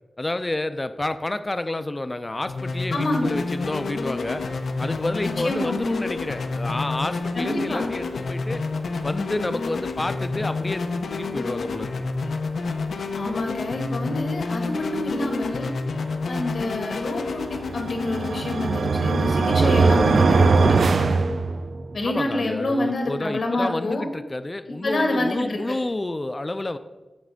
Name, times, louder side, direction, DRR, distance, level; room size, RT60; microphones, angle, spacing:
voice 1, 0.2-4.4 4.8-8.6 9.0-11.9 22.0-26.8, left 2 dB, 25° left, 11 dB, 0.3 m, -29 dB
sound 1, 2.5-20.2, left 3 dB, 85° left, 0.5 m, -29 dB
voice 2, 2.9-3.4 5.2-5.9 7.3-7.9 13.1-15.7 16.3-21.2 21.9-24.0 24.7-25.7, left 2 dB, 60° left, 2 dB, 1.3 m, -27 dB
sound 2, 17.7-22.0, right 4 dB, 65° right, 0.3 m, -20 dB
7.2 x 3.3 x 6.2 m, 1.1 s
wide cardioid pair, 135°, 0 cm